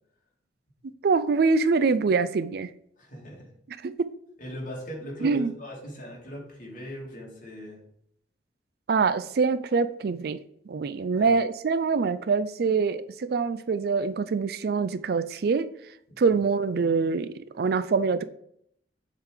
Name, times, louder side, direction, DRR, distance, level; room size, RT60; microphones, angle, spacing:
voice 1, 1.0-2.7 3.8-4.1 5.2-5.5 8.9-10.4 10.7-15.7 16.2-18.2, right 4 dB, 60° right, 0.4 m, -24 dB
voice 2, 3.0-3.5 4.4-7.8 11.1-11.3 16.1-16.4, equal, 50° left, 2.5 m, -40 dB
7.2 x 3.8 x 5.0 m
head